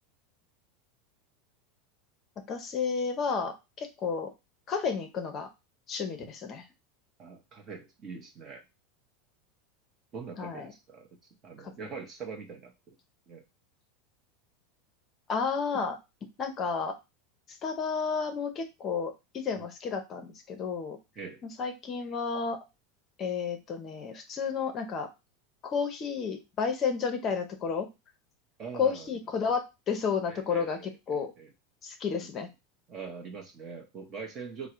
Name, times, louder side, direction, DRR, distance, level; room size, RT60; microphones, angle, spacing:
voice 1, 2.5-4.3 4.7-5.5 5.9-6.7 10.4-10.7 15.3-16.0 16.4-16.9 17.5-21.0 21.4-22.6 23.2-25.1 25.6-27.9 28.7-31.3 31.8-32.5, left 5 dB, 30° left, 6 dB, 0.7 m, -31 dB
voice 2, 7.2-8.6 10.1-11.1 11.4-13.0 13.3-13.4 19.5-19.6 21.2-21.4 28.6-29.1 30.3-31.5 32.1-32.3 32.9-34.7, right 5 dB, 30° right, 4 dB, 0.7 m, -43 dB
3.7 x 2.0 x 4.4 m, 0.24 s
supercardioid pair, 155°, 0 cm